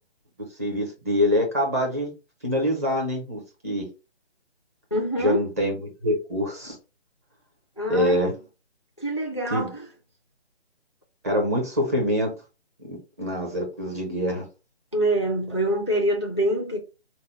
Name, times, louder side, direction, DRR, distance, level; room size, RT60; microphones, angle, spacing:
voice 1, 0.6-2.1 2.4-3.8 5.2-6.8 7.9-8.3 9.5-9.7 11.2-12.3 12.9-14.4, left 1 dB, 15° right, 0.7 m, -25 dB
voice 2, 4.9-5.4 7.8-8.3 9.0-9.8 14.9-16.8, right 1 dB, 25° left, 0.4 m, -25 dB
4.0 x 2.1 x 4.0 m
figure-of-eight pair, 145°, 32 cm